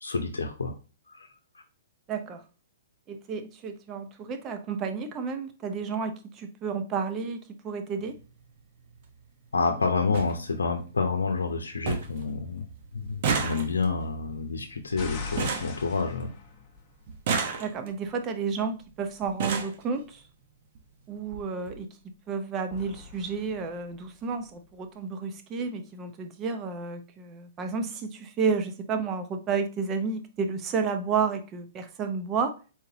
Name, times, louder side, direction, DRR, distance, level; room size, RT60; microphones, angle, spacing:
voice 1, 0.0-0.7 1.1-1.3 9.5-12.7 12.9-16.3, left 4 dB, 90° left, 0.7 m, -28 dB
voice 2, 2.1-2.4 3.1-8.2 17.6-20.2 21.1-22.0 22.3-32.6, right 5 dB, 25° right, 0.7 m, -31 dB
sound 1, 8.0-8.2 9.4-9.5 9.8-9.9 10.1-10.3 10.8-11.3 11.5-11.6 11.9-12.2 12.5-16.5 17.1-18.0 18.8-18.9 19.2-19.8 20.8-20.9 21.2-21.4 21.7-21.8, right 5 dB, 50° right, 1.0 m, -32 dB
sound 2, 15.0-17.4 22.7-24.8, left 5 dB, 30° left, 1.2 m, -41 dB
4.3 x 3.8 x 2.8 m
hypercardioid pair, 130°, 0 cm